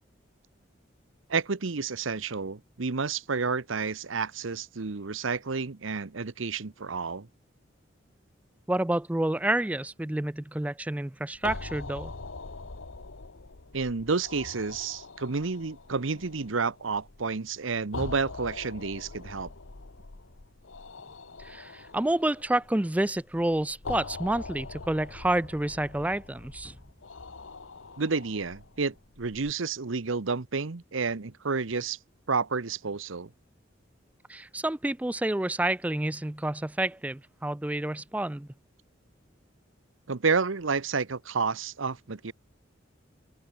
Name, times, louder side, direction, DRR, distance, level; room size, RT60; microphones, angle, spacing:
voice 1, 1.3-7.3 13.7-19.5 28.0-32.0 32.3-33.3 40.1-42.3, right 4 dB, 85° right, 0.9 m, -30 dB
voice 2, 8.7-12.1 21.4-26.8 34.3-38.5, right 1 dB, 5° right, 0.3 m, -29 dB
sound 1, 11.3-29.5, left 3 dB, 85° left, 1.3 m, -43 dB
open air
head